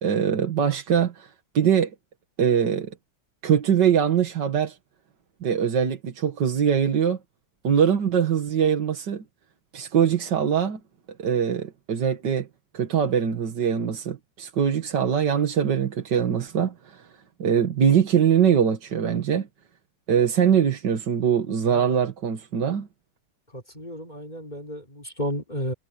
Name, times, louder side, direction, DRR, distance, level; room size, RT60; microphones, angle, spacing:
voice 1, 0.0-1.9 2.4-2.9 3.4-4.8 5.4-7.2 7.6-9.2 9.7-10.8 11.2-12.5 12.7-17.1 17.4-19.5 20.1-22.9, right 8 dB, 90° right, 2.2 m, -22 dB
voice 2, 23.5-25.7, equal, 25° left, 3.5 m, -32 dB
omnidirectional pair, 1.8 m